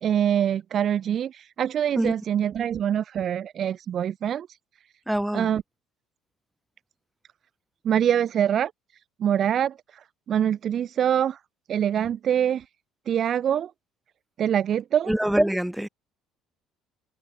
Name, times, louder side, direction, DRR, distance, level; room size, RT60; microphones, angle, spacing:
voice 1, 0.0-4.6 5.3-5.6 7.8-8.7 9.2-11.4 11.7-12.7 13.1-13.7 14.4-15.1, right 9 dB, 50° right, 0.8 m, -24 dB
voice 2, 5.1-5.5 15.1-15.9, right 1 dB, 5° right, 0.7 m, -24 dB
figure-of-eight pair, 55°, 0 cm